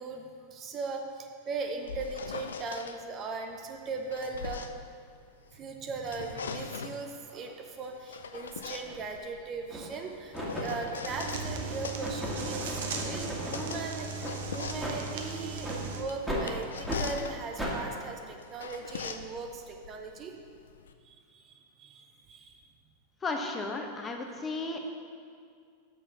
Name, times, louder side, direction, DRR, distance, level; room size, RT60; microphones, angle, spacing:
voice 1, 0.0-4.7 5.5-12.7 12.9-20.4 21.0-22.6, right 4 dB, 30° right, 3 dB, 0.7 m, -39 dB
sound 1, 1.6-3.0 3.8-5.6 5.9-7.1 7.8-11.5 11.8-20.9, left 6 dB, 65° left, 0.4 m, -41 dB
sound 2, 8.9-9.0 9.7-10.0 10.3-13.7 14.2-14.4 14.8-15.0 15.6-15.8 16.3-16.5 16.9-17.0 17.6-17.8, equal, 5° right, 1.6 m, -36 dB
sound 3, 11.0-16.0, right 4 dB, 60° right, 0.9 m, -37 dB
voice 2, 23.2-24.8, left 3 dB, 20° left, 3 dB, 0.9 m, -34 dB
6.7 x 6.2 x 5.8 m, 2.2 s
figure-of-eight pair, 90°, 0 cm